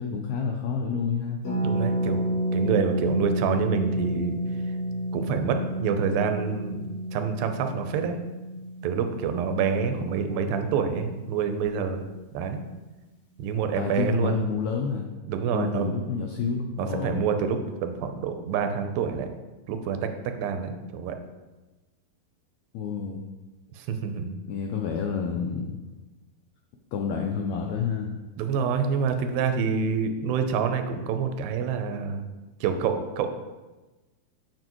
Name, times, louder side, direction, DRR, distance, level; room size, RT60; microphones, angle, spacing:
voice 1, 0.0-1.4 9.9-10.1 13.8-15.1 15.5-17.3 22.7-23.2 24.5-25.8 26.9-28.2, left 6 dB, 85° left, 2 dB, 1.6 m, -29 dB
Harp, 1.4-11.1 11.3-11.4 11.6-11.9, right 1 dB, 60° left, 1.1 m, -30 dB
voice 2, 1.6-4.3 5.1-6.8 7.1-8.2 8.8-12.0 12.3-12.6 13.4-14.4 15.3-15.9 16.8-19.3 19.7-20.1 20.4-21.2 23.8-24.4 28.4-32.2 32.6-33.3, right 6 dB, 90° right, 7 dB, 2.5 m, -27 dB
7.7 x 7.4 x 3.0 m, 1.1 s
omnidirectional pair, 4.0 m